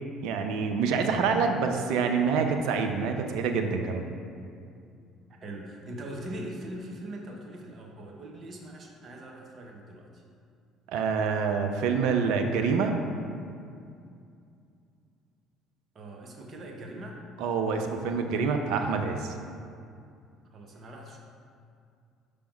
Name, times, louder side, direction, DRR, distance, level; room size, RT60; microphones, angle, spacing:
voice 1, 0.2-4.0 10.9-13.0 17.4-19.4, right 5 dB, 65° right, 4 dB, 0.5 m, -26 dB
voice 2, 5.4-10.2 15.9-17.2 20.5-21.2, right 1 dB, 40° right, 0 dB, 1.0 m, -41 dB
5.8 x 3.5 x 5.2 m, 2.4 s
hypercardioid pair, 55°, 0 cm